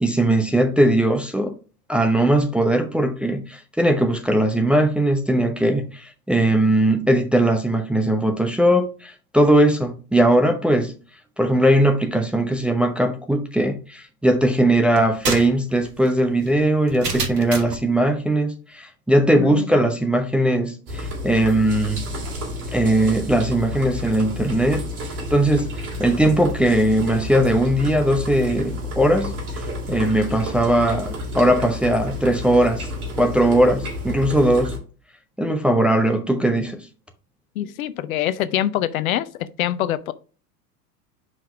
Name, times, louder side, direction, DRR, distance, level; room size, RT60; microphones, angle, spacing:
voice 1, 0.0-1.5 1.9-11.0 11.4-22.0 22.7-24.8 25.3-25.7 26.0-29.6 29.9-32.9 33.2-34.8 35.4-36.9, right 1 dB, ahead, 0.5 m, -19 dB
sound 1, 15.0-17.9, right 4 dB, 80° right, 1.6 m, -29 dB
voice 2, 19.3-19.8 37.6-39.3 39.6-40.1, left 12 dB, 60° left, 0.7 m, -24 dB
sound 2, 20.9-34.8, left 1 dB, 65° right, 3.0 m, -30 dB
5.5 x 5.2 x 4.7 m
figure-of-eight pair, 95°, 47 cm